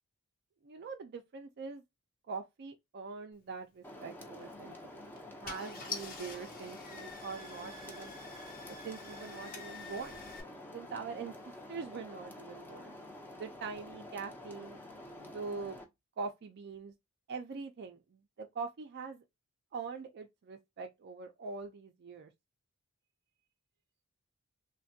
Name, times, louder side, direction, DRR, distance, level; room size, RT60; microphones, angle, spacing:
voice 1, 0.6-1.8 2.3-5.1 5.4-8.1 8.6-10.2 10.7-13.0 13.3-14.8 15.1-15.8 16.2-16.9 17.3-19.2 19.7-22.3, right 4 dB, 50° right, 0.4 m, -43 dB
sound 1, 3.8-15.8, left 1 dB, 10° left, 0.5 m, -49 dB
Car / Engine starting, 4.3-4.6 5.2-5.3 5.4-10.4, left 4 dB, 40° left, 0.9 m, -46 dB
3.3 x 2.1 x 2.6 m
head